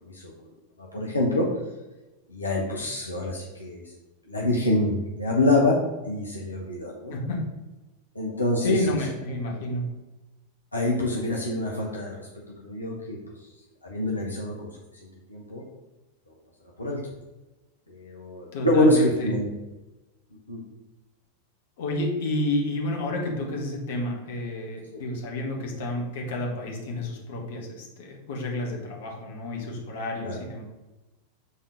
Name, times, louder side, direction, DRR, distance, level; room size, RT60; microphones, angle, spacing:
voice 1, 0.9-1.5 2.3-3.8 4.3-5.8 6.0-7.1 8.1-9.0 10.7-12.3 12.6-13.2 13.8-14.7 15.3-15.6 16.8-17.0 17.9-19.5 20.5-20.6 24.9-25.0 30.2-30.4, left 1 dB, 80° left, -3 dB, 1.1 m, -25 dB
voice 2, 7.1-7.5 8.6-9.9 18.5-19.3 21.8-30.6, left 1 dB, 55° left, 0 dB, 1.6 m, -30 dB
6.9 x 3.7 x 5.2 m, 1.1 s
figure-of-eight pair, 90°, 0 cm